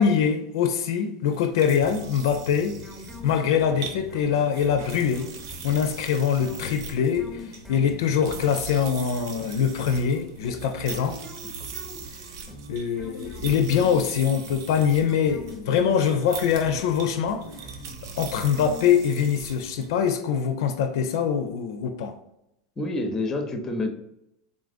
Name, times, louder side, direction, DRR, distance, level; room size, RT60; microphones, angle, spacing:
voice 1, 0.0-2.8 3.2-5.3 5.6-11.2 12.7-17.4 18.2-22.1, left 7 dB, 75° left, 0.4 m, -23 dB
sound 1, 1.3-20.1, right 5 dB, 75° right, 0.5 m, -41 dB
sound 2, 1.8-19.3, left 2 dB, 5° right, 0.8 m, -44 dB
voice 2, 22.8-23.9, left 2 dB, 20° left, 0.5 m, -27 dB
3.6 x 2.5 x 2.4 m
supercardioid pair, 115°, 2 cm